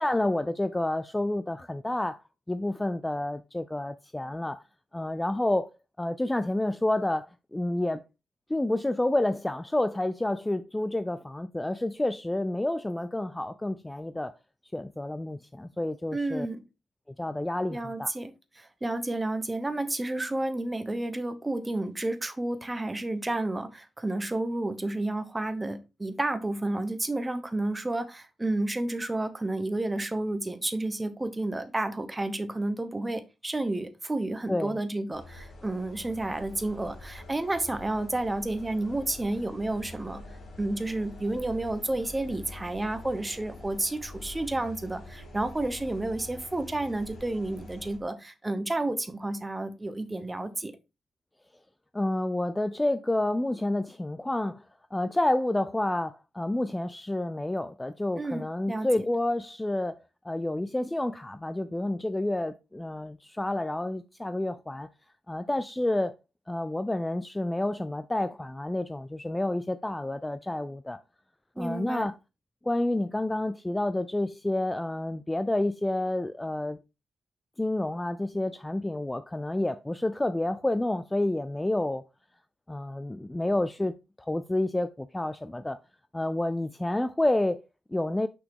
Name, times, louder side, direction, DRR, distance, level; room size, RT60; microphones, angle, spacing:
voice 1, 0.0-2.2 2.5-4.6 4.9-5.7 6.0-8.0 8.5-14.3 14.7-16.5 17.2-18.1 34.5-34.8 51.9-54.6 54.9-60.0 60.2-64.9 65.3-66.1 66.5-71.0 71.6-72.1 72.6-76.8 77.6-82.0 82.7-85.8 86.1-88.3, left 1 dB, 10° left, 0.3 m, -29 dB
voice 2, 16.1-16.6 17.7-40.2 40.6-50.7 58.2-58.9 71.6-72.1, right 2 dB, 15° right, 0.9 m, -31 dB
sound 1, 35.1-48.0, left 2 dB, 50° left, 2.7 m, -46 dB
6.1 x 5.8 x 3.6 m
wide cardioid pair, 150°, 0 cm